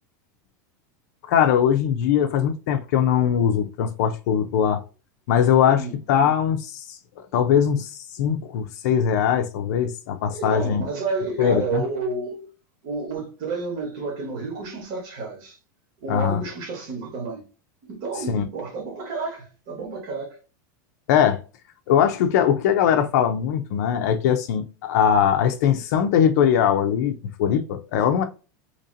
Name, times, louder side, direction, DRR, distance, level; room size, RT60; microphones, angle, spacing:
voice 1, 1.3-4.8 5.3-7.0 7.3-10.9 11.4-11.8 16.1-16.4 18.3-18.4 21.1-21.4 21.9-28.2, left 8 dB, 60° left, 0.5 m, -21 dB
voice 2, 10.3-12.5 12.8-15.6 16.0-17.4 17.8-20.4, right 4 dB, 45° right, 1.2 m, -30 dB
2.9 x 2.8 x 3.8 m
supercardioid pair, 170°, 10 cm